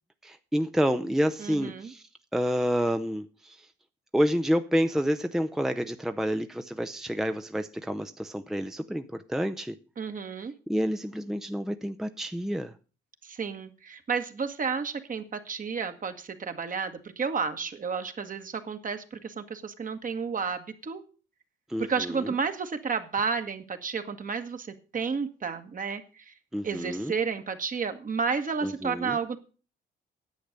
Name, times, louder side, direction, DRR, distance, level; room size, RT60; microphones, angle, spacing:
voice 1, 0.2-2.0 2.3-3.7 4.1-9.8 10.7-12.7 21.7-22.4 26.5-27.1 28.6-29.2, equal, ahead, 0.6 m, -29 dB
voice 2, 1.4-1.9 10.0-10.5 13.2-21.0 21.8-24.7 24.9-26.3 26.6-29.4, right 5 dB, 40° right, 1.6 m, -31 dB
10.0 x 8.0 x 6.6 m
cardioid pair, 90°, 20 cm